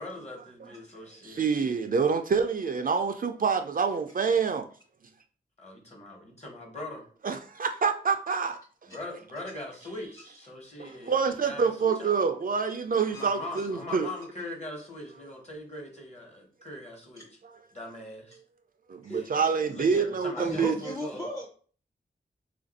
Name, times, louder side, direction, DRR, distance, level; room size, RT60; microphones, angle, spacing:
voice 1, 0.0-1.7 5.6-7.1 8.9-12.2 13.1-17.3 17.7-18.4 19.0-21.3, left 1 dB, 35° left, 1.2 m, -41 dB
voice 2, 1.2-4.6 7.2-8.6 10.8-14.1 18.9-20.7, right 5 dB, 50° right, 0.4 m, -27 dB
voice 3, 19.0-20.0 20.3-21.5, left 1 dB, 15° left, 0.6 m, -37 dB
2.8 x 2.5 x 4.0 m
wide cardioid pair, 65°, 19 cm